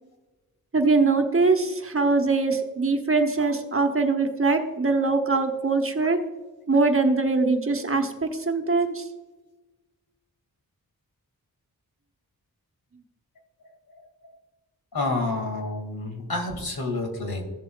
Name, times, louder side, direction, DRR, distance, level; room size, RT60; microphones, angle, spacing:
voice 1, 0.7-6.2 6.7-9.1, right 3 dB, 35° right, 4 dB, 1.1 m, -22 dB
voice 2, 14.9-17.4, left 2 dB, 80° left, 3 dB, 2.2 m, -29 dB
15.0 x 7.4 x 2.3 m, 1.2 s
wide cardioid pair, 75°, 36 cm